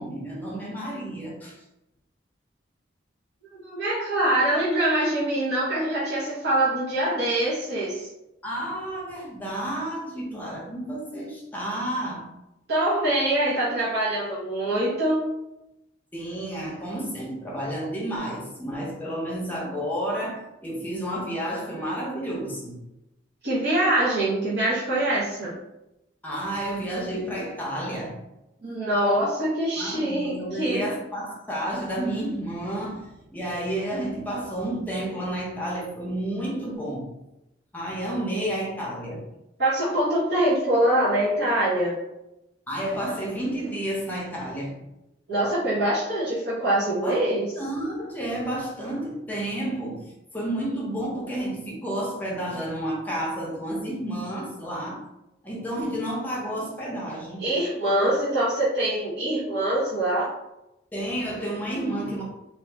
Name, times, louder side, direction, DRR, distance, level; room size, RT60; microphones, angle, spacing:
voice 1, 0.0-1.6 8.4-12.3 16.1-22.8 26.2-28.2 29.8-37.1 37.7-39.3 42.7-44.8 47.0-47.2 47.6-55.0 55.4-57.4 60.9-62.2, right 1 dB, 10° left, -4 dB, 0.7 m, -31 dB
voice 2, 3.5-8.1 12.7-15.2 23.4-25.5 28.6-30.9 39.6-42.0 45.3-47.5 57.4-60.3, right 1 dB, 70° right, -10 dB, 1.0 m, -24 dB
2.7 x 2.5 x 3.4 m, 0.90 s
head